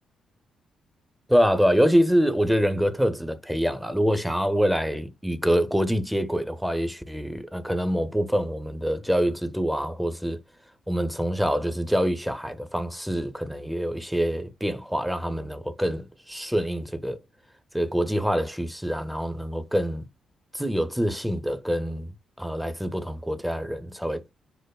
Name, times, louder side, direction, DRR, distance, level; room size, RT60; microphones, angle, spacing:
voice 1, 1.3-10.4 10.9-17.2 17.7-20.0 20.5-22.1 22.4-24.2, equal, 5° right, 0.5 m, -25 dB
5.1 x 2.0 x 2.2 m
figure-of-eight pair, 40°, 0 cm